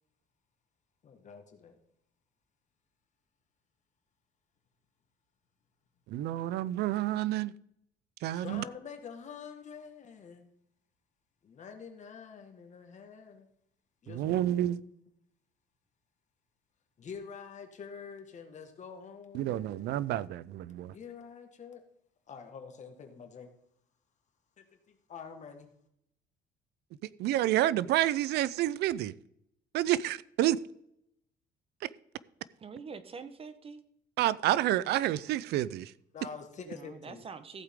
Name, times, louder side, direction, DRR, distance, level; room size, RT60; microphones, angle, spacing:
voice 1, 1.0-1.8 8.3-10.5 11.4-13.5 14.0-14.9 17.0-20.1 20.9-21.8 22.3-23.5 24.6-25.7 36.1-37.2, left 6 dB, 45° left, 1.7 m, -47 dB
voice 2, 6.1-7.5 8.2-8.6 14.1-14.8 19.3-20.9 27.2-29.1 29.7-30.6 31.8-31.9 34.2-35.9, right 13 dB, 75° right, 0.5 m, -29 dB
voice 3, 32.6-33.8 36.6-37.6, right 5 dB, 35° right, 1.1 m, -45 dB
14.5 x 8.2 x 3.7 m
cardioid pair, 110°, 17 cm